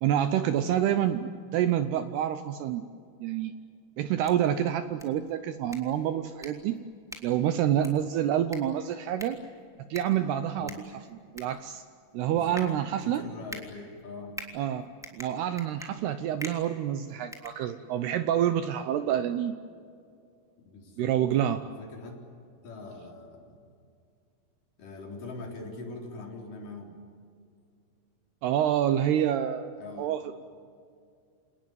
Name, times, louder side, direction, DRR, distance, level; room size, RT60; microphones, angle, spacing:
voice 1, 0.0-2.9 3.2-3.5 4.0-6.8 7.2-9.4 9.9-10.7 11.3-11.8 12.1-13.2 14.5-14.8 15.1-19.6 21.0-21.6 28.4-30.3, right 10 dB, 85° right, 10 dB, 2.3 m, -27 dB
sound 1, 4.0-18.2, equal, ahead, 1.8 m, -47 dB
voice 2, 12.3-12.6 13.0-14.4 20.6-22.2 22.6-23.7 24.8-26.9 29.8-30.1, left 3 dB, 45° left, 0 dB, 5.1 m, -43 dB
28.0 x 19.5 x 9.4 m, 2.4 s
omnidirectional pair, 5.7 m